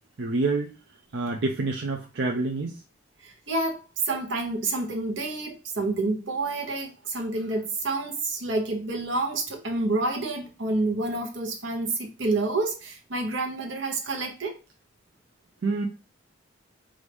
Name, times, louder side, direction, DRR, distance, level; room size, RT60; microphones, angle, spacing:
voice 1, 0.2-0.7 1.1-2.8 15.6-15.9, right 3 dB, 70° right, 0.5 m, -27 dB
voice 2, 3.2-14.5, right 2 dB, 90° right, 1.0 m, -28 dB
4.8 x 2.6 x 3.4 m
head